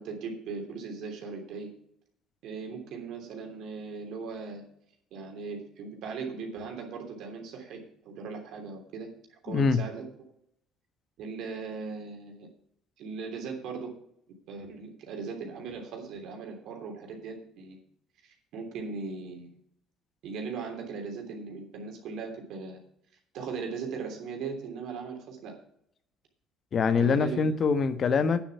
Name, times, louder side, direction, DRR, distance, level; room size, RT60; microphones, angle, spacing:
voice 1, 0.0-1.7 2.4-4.6 5.1-9.1 9.4-10.1 11.2-12.5 13.0-13.9 14.5-17.8 18.2-19.6 20.2-22.8 23.3-25.6 27.0-27.4, right 5 dB, 70° right, 3.2 m, -38 dB
voice 2, 9.5-9.8 26.7-28.4, left 5 dB, 50° left, 1.1 m, -24 dB
9.7 x 7.3 x 7.1 m
hypercardioid pair, 65°, 0 cm